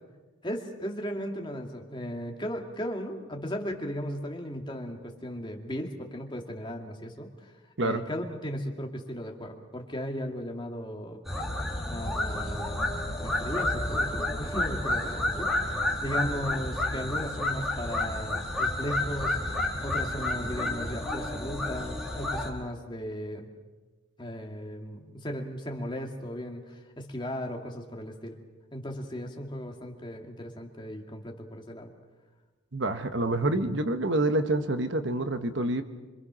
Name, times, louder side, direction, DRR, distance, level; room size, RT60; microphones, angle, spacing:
voice 1, 0.4-7.5 7.8-11.2 11.9-23.5 24.2-28.4 28.7-31.9, equal, 20° left, 2 dB, 2.2 m, -36 dB
sound 1, 11.3-22.5, left 1 dB, ahead, 3.1 m, -30 dB
voice 2, 32.7-35.8, right 2 dB, 55° right, 9 dB, 1.2 m, -27 dB
26.0 x 25.0 x 6.3 m, 1.3 s
head